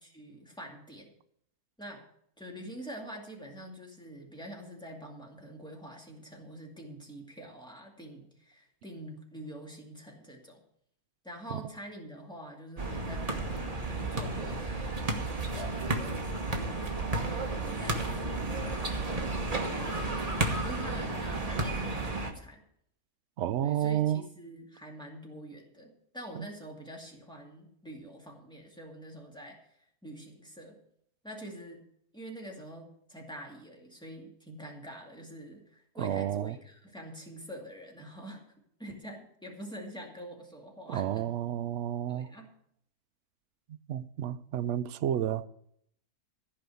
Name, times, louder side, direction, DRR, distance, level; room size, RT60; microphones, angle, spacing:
voice 1, 0.0-1.1 1.8-2.1 2.4-10.6 11.2-15.0 15.5-16.8 17.2-18.9 19.7-22.6 23.6-30.8 31.2-31.8 32.1-38.4 38.8-41.3 42.1-42.5, right 1 dB, 5° left, 2.2 m, -46 dB
sound 1, 12.8-22.3, right 2 dB, 25° right, 1.3 m, -32 dB
voice 2, 23.4-24.2 26.3-26.5 36.0-36.5 40.9-42.3 43.7-45.5, right 10 dB, 65° right, 0.7 m, -31 dB
15.0 x 5.4 x 8.3 m
omnidirectional pair, 1.7 m